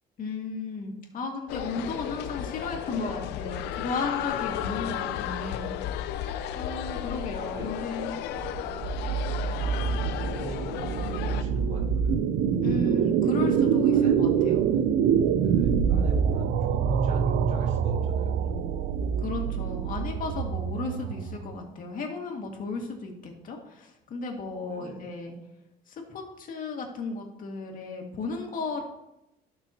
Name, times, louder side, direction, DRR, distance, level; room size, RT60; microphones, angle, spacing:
voice 1, 0.2-5.7 6.5-8.1 12.6-14.7 19.2-25.3 25.9-28.8, left 3 dB, 55° left, 1 dB, 2.2 m, -34 dB
sound 1, 1.5-11.4, left 10 dB, 90° left, 0.6 m, -34 dB
voice 2, 7.3-7.8 8.9-9.9 10.2-12.2 13.3-13.6 13.9-14.9 15.4-18.6 24.7-25.1, right 2 dB, 45° right, -3 dB, 3.5 m, -43 dB
sound 2, 8.3-21.5, right 7 dB, 75° right, 0.6 m, -25 dB
15.0 x 6.1 x 3.0 m, 0.87 s
cardioid pair, 110°, 17 cm